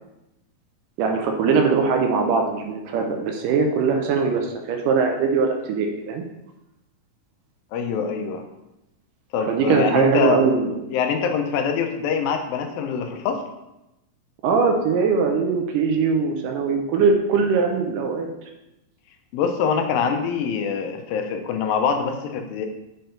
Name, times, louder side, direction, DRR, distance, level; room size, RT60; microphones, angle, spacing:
voice 1, 1.0-6.2 9.4-10.7 14.4-18.3, right 5 dB, 75° right, 3 dB, 2.2 m, -21 dB
voice 2, 7.7-8.4 9.3-10.4 10.9-13.4 19.3-22.7, left 6 dB, 85° left, 5 dB, 2.5 m, -24 dB
6.7 x 4.4 x 3.8 m, 0.92 s
omnidirectional pair, 4.0 m